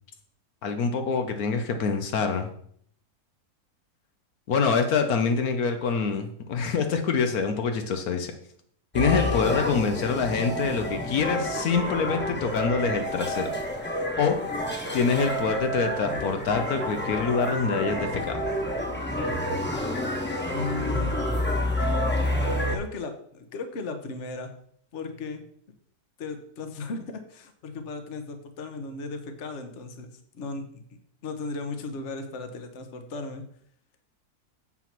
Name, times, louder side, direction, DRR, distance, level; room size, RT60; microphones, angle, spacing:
voice 1, 0.6-2.5 4.5-8.3 8.9-13.5 14.2-14.4 14.9-18.4, left 5 dB, 75° left, 6 dB, 1.3 m, -25 dB
sound 1, 8.9-22.8, left 1 dB, 10° left, 1.2 m, -29 dB
voice 2, 20.5-21.1 22.7-24.5 24.9-25.4 26.2-30.8 31.2-33.4, left 3 dB, 55° left, 7 dB, 1.3 m, -36 dB
7.6 x 6.0 x 5.9 m, 0.65 s
omnidirectional pair, 1.6 m